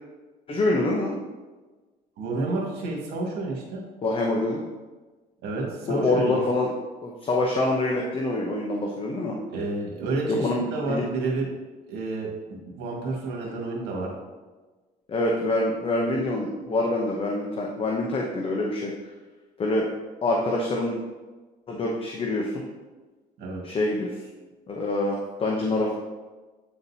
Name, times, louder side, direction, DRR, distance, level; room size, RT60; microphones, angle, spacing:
voice 1, 0.5-1.2 4.0-4.6 5.9-6.7 7.0-9.4 10.3-11.0 15.1-19.1 19.6-19.9 20.2-21.0 21.7-22.6 23.6-24.2 24.7-25.9, left 2 dB, 35° left, -1 dB, 0.8 m, -25 dB
voice 2, 2.2-3.8 5.4-6.4 9.5-11.5 11.9-14.1 23.4-23.6, right 3 dB, 80° right, -2 dB, 1.8 m, -30 dB
8.8 x 4.0 x 2.8 m, 1.3 s
cardioid pair, 110°, 17 cm